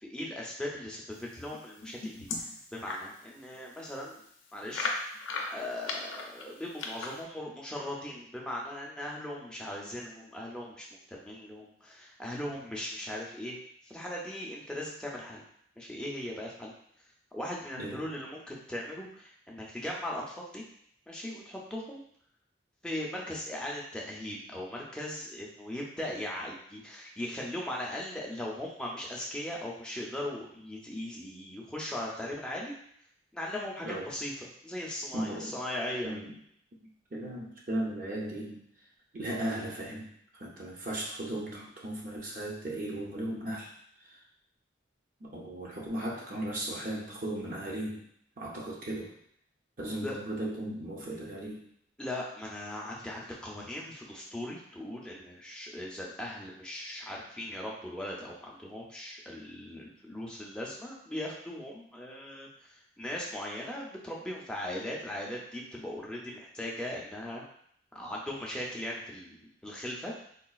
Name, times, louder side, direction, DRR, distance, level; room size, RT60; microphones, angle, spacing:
voice 1, 0.0-4.2 4.5-5.1 5.5-15.4 15.8-16.7 17.3-20.6 21.1-22.0 22.8-32.7 33.3-36.1 50.0-50.2 52.0-67.4 67.9-70.1, left 1 dB, 5° left, -3 dB, 0.4 m, -39 dB
sound 1, 1.5-3.1 3.6-3.7 3.9-4.0 4.7-7.2, left 3 dB, 85° left, 0.5 m, -36 dB
voice 2, 33.8-34.1 35.1-35.6 36.0-36.3 37.1-38.7 39.1-40.1 40.4-43.7 44.0-44.2 45.2-48.0 48.4-49.1 49.8-51.7, right 1 dB, 45° right, -3 dB, 0.6 m, -36 dB
3.8 x 2.3 x 2.3 m, 0.67 s
head